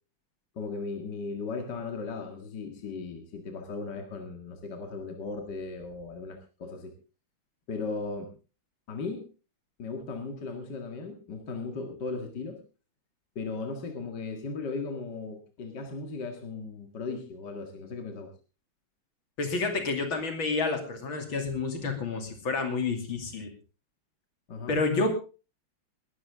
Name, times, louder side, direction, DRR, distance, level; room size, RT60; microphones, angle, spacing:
voice 1, 0.6-6.9 7.7-8.3 8.9-9.3 9.8-12.6 13.4-18.3 24.5-24.8, left 4 dB, 60° left, 4 dB, 2.6 m, -37 dB
voice 2, 19.4-23.5 24.7-25.1, left 3 dB, 80° left, 6 dB, 3.5 m, -29 dB
20.0 x 12.5 x 3.6 m, 0.33 s
omnidirectional pair, 2.2 m